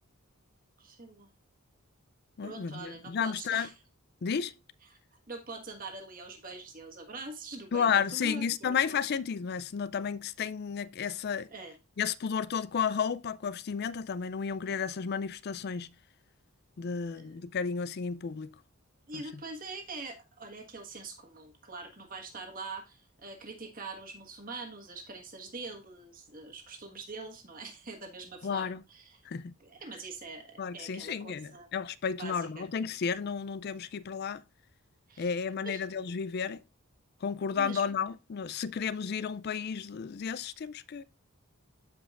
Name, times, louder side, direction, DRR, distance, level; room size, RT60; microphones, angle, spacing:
voice 1, 0.8-1.3 2.4-3.7 4.9-5.0 5.3-9.0 11.5-11.8 17.1-17.4 19.1-29.2 29.6-31.7 32.2-32.7 35.1-35.8 37.5-37.8, right 3 dB, 40° right, 1.5 m, -44 dB
voice 2, 2.4-3.7 4.2-4.5 7.7-11.5 12.0-15.9 16.8-18.5 19.1-19.2 28.4-28.8 29.3-29.5 30.6-34.4 35.2-36.6 37.2-41.0, left 6 dB, 50° left, 0.4 m, -32 dB
13.5 x 5.1 x 2.4 m
head